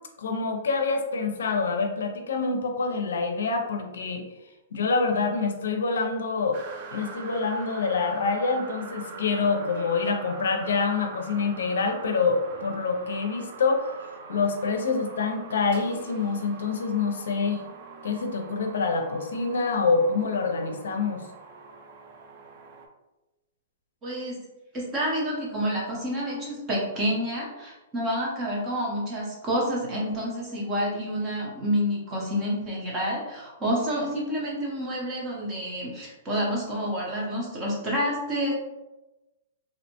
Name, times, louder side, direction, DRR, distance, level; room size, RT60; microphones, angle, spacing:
voice 1, 0.2-4.2 4.7-6.6 6.9-13.9 14.3-17.6 18.0-21.2, left 4 dB, 90° left, 4 dB, 0.5 m, -26 dB
sound 1, 6.5-22.9, right 4 dB, 45° right, 0.4 m, -43 dB
voice 2, 24.0-24.4 24.7-38.5, equal, 20° right, -4 dB, 0.8 m, -28 dB
2.7 x 2.1 x 2.8 m, 1.0 s
hypercardioid pair, 155°, 0 cm